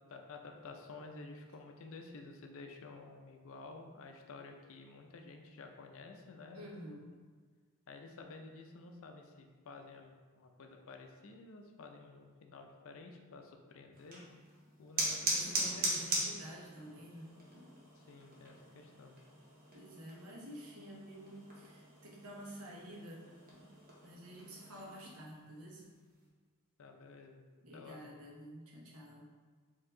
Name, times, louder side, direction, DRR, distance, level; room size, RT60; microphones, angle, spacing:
voice 1, 0.0-6.7 7.9-14.2 14.8-16.2 18.0-19.2 26.8-27.4 27.7-28.1, left 3 dB, 65° left, 4 dB, 0.5 m, -52 dB
voice 2, 6.5-7.1 15.3-17.3 19.7-23.2 24.0-25.9 27.6-29.3, equal, 75° right, -3 dB, 1.0 m, -50 dB
sound 1, 13.9-25.1, right 2 dB, 40° right, 1.0 m, -41 dB
4.5 x 2.8 x 3.7 m, 1.5 s
head